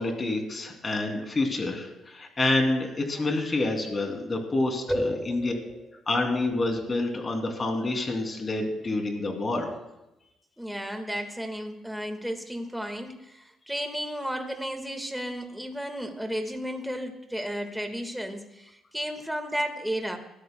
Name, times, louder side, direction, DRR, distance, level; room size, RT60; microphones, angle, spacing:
voice 1, 0.0-5.5 6.1-9.7, left 2 dB, 35° left, 3 dB, 2.8 m, -28 dB
voice 2, 4.9-5.6 10.6-20.2, equal, 5° right, 5 dB, 1.7 m, -33 dB
21.5 x 13.0 x 2.2 m, 0.95 s
cardioid pair, 90°, 0 cm